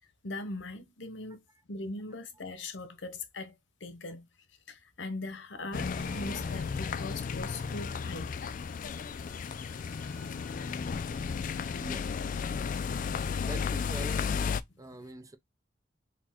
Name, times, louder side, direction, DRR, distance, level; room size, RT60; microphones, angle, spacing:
voice 1, 0.2-1.4 1.7-3.5 3.8-4.3 4.7-8.3, left 2 dB, 90° left, 0.9 m, -40 dB
sound 1, 5.7-14.6, left 6 dB, 45° left, 0.3 m, -34 dB
sound 2, 6.0-7.9 8.2-12.5, equal, 85° right, 1.7 m, -55 dB
voice 2, 13.1-14.3 14.8-15.4, right 1 dB, 20° right, 0.5 m, -44 dB
4.3 x 2.2 x 4.3 m
head